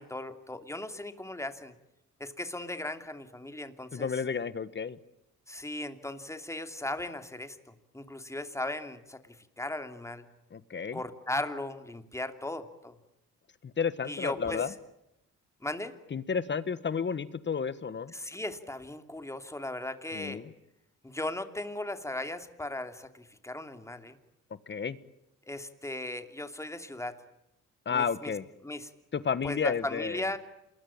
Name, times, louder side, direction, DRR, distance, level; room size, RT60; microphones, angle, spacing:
voice 1, 0.0-1.7 2.2-4.1 5.5-10.3 10.9-12.9 14.0-14.6 15.6-15.9 18.1-20.4 21.0-24.2 25.4-27.2 27.9-28.3 28.6-28.9 29.4-30.4, left 1 dB, 10° left, 8 dB, 2.8 m, -37 dB
voice 2, 3.9-5.0 10.5-11.0 13.6-14.7 16.1-18.1 20.1-20.5 24.7-25.0 27.8-28.5 29.1-30.3, left 6 dB, 35° left, 15 dB, 1.4 m, -31 dB
28.0 x 21.0 x 8.8 m, 0.86 s
cardioid pair, 90°, 30 cm